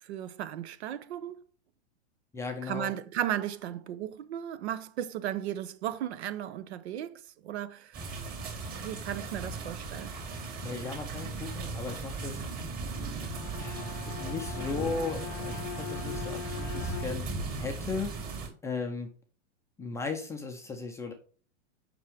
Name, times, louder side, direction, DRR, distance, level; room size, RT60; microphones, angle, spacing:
voice 1, 0.1-1.4 2.6-8.0 8.8-10.1, right 11 dB, 60° right, 0.9 m, -35 dB
voice 2, 2.3-2.9 10.6-12.4 13.6-17.3 17.6-18.1 18.6-19.1 19.8-21.1, left 4 dB, 10° left, 0.5 m, -36 dB
sound 1, 7.9-18.5, right 3 dB, 25° right, 2.3 m, -37 dB
Bowed string instrument, 13.2-17.5, left 14 dB, 60° left, 0.6 m, -41 dB
7.2 x 6.1 x 3.5 m
supercardioid pair, 155°, 36 cm